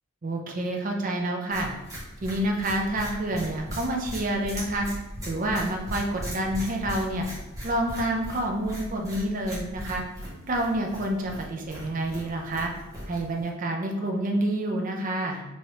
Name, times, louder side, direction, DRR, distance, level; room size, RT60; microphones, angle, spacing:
voice 1, 0.2-1.7 2.2-4.9 5.2-7.3 7.6-10.0 10.5-12.7 13.1-15.4, right 1 dB, 40° right, 1 dB, 0.5 m, -28 dB
sound 1, 1.5-13.5, equal, 15° right, 1.3 m, -39 dB
4.7 x 2.8 x 3.0 m, 1.1 s
head